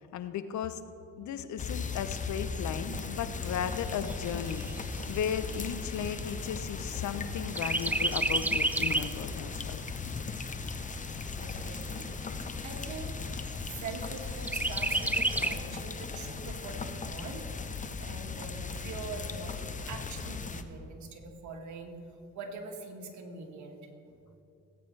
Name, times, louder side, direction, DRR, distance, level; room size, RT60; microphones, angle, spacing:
voice 1, 0.1-0.8 1.2-9.8, left 8 dB, 70° left, 11 dB, 0.7 m, -36 dB
sound 1, 1.6-20.6, left 4 dB, 25° left, 0.7 m, -38 dB
Chirp tweet, 3.4-7.2 7.6-9.2 9.7-9.8 10.1-11.1 11.7-11.8 12.1-12.2 12.7-13.2 14.5-15.5, right 2 dB, 5° right, 0.3 m, -31 dB
voice 2, 11.3-13.2 13.7-22.0 22.3-23.9, right 4 dB, 70° right, 2 dB, 1.7 m, -43 dB
18.0 x 8.7 x 3.2 m, 2.7 s
cardioid pair, 90°, 30 cm